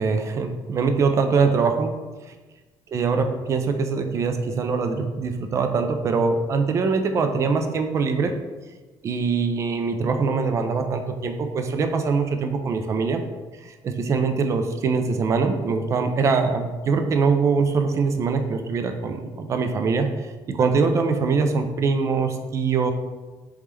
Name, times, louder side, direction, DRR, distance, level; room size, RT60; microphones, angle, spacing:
voice 1, 0.0-1.9 2.9-8.3 9.0-13.2 13.7-22.9, right 4 dB, 35° right, 6 dB, 0.3 m, -23 dB
3.4 x 3.1 x 3.2 m, 1.3 s
cardioid pair, 145°, 9 cm